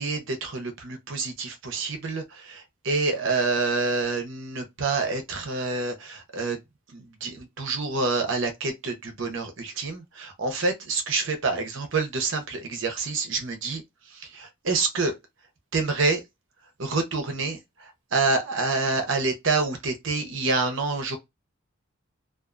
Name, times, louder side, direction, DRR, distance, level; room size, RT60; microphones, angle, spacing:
voice 1, 0.0-6.6 6.9-13.8 14.1-15.2 15.7-16.2 16.8-21.2, right 3 dB, 65° right, 0.8 m, -27 dB
2.5 x 2.4 x 2.5 m
head